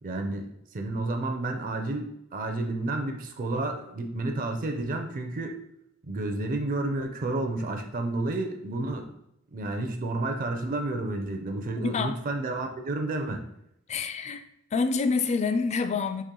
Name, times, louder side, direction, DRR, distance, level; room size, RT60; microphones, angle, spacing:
voice 1, 0.0-5.6 6.0-9.1 9.5-13.4, right 2 dB, 40° right, 4 dB, 0.5 m, -31 dB
voice 2, 11.8-12.2 13.9-16.2, left 4 dB, 35° left, 9 dB, 0.3 m, -27 dB
4.3 x 3.2 x 3.7 m, 0.79 s
head